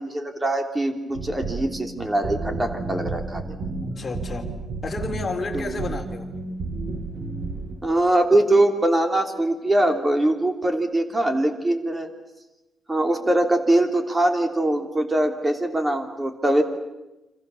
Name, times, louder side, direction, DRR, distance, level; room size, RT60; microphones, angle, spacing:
voice 1, 0.0-3.5 5.5-5.8 7.8-12.1 12.9-16.6, right 1 dB, 15° right, 6 dB, 3.3 m, -22 dB
sound 1, 1.1-7.8, right 3 dB, 85° right, 7.7 m, -32 dB
voice 2, 3.8-4.5 4.8-6.3, left 3 dB, 30° left, 3 dB, 3.7 m, -31 dB
29.5 x 27.0 x 7.2 m, 0.97 s
wide cardioid pair, 150°, 0 cm